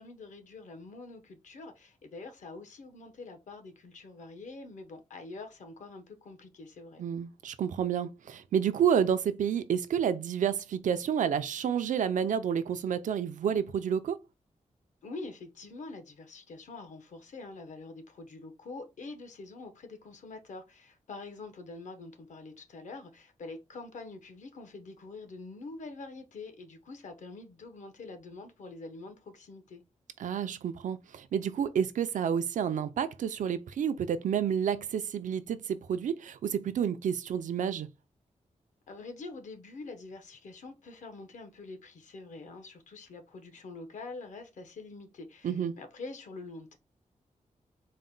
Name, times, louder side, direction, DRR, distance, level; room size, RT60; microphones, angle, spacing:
voice 1, 0.0-7.0 15.0-29.8 38.9-46.8, left 3 dB, 70° left, 0.9 m, -45 dB
voice 2, 7.0-14.2 30.2-37.9 45.4-45.8, right 8 dB, 80° right, 0.4 m, -30 dB
4.1 x 2.1 x 3.8 m
wide cardioid pair, 160°, 13 cm